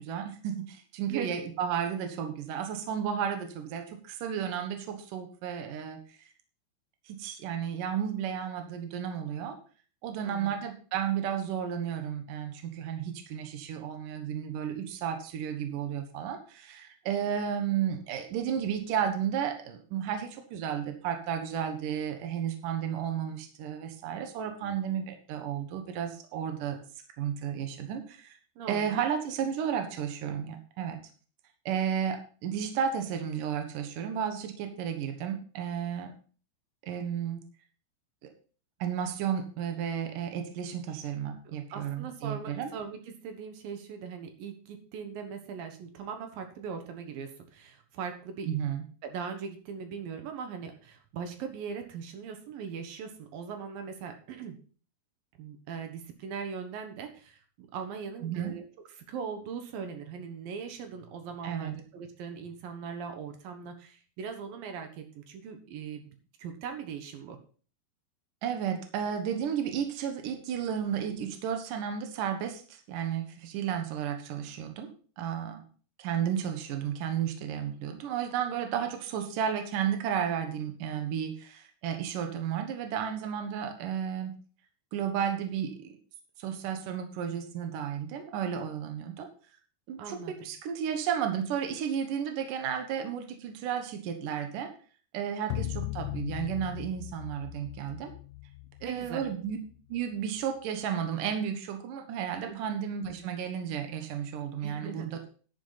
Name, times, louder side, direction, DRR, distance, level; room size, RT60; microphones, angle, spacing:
voice 1, 0.0-6.0 7.1-9.6 10.0-26.8 27.2-28.4 28.7-31.1 31.7-36.1 36.8-37.4 38.2-38.3 38.8-42.7 48.5-48.8 58.2-58.5 61.4-61.8 68.4-74.9 75.2-75.6 76.0-84.3 84.9-85.9 86.4-89.3 89.9-94.7 95.1-98.1 98.8-99.6 99.9-105.2, right 8 dB, 85° right, 5 dB, 1.8 m, -33 dB
voice 2, 10.2-10.6 17.3-17.4 28.6-29.0 40.9-41.0 41.4-48.5 49.0-54.6 55.4-58.6 59.0-67.4 90.0-90.5 95.6-95.7 98.8-99.2 102.5-102.6 104.6-105.1, right 6 dB, 65° right, 6 dB, 2.3 m, -40 dB
sound 1, 95.5-100.0, left 19 dB, 85° left, 3.3 m, -38 dB
11.0 x 9.0 x 4.1 m, 0.40 s
omnidirectional pair, 5.8 m